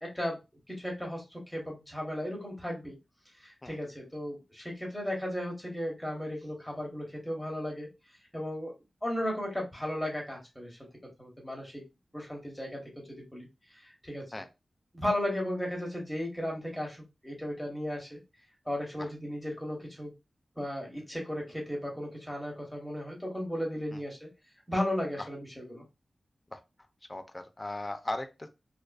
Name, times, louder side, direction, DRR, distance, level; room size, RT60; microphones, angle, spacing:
voice 1, 0.0-0.4 0.7-3.0 3.4-7.9 8.3-8.7 9.0-10.8 11.2-11.8 12.1-13.5 13.7-14.2 14.9-18.2 18.7-20.1 20.6-24.3 24.7-25.9, left 1 dB, 10° left, -1 dB, 1.2 m, -35 dB
voice 2, 27.1-28.5, left 2 dB, 25° left, 8 dB, 0.4 m, -37 dB
2.5 x 2.3 x 2.2 m, 0.25 s
wide cardioid pair, 70°, 0 cm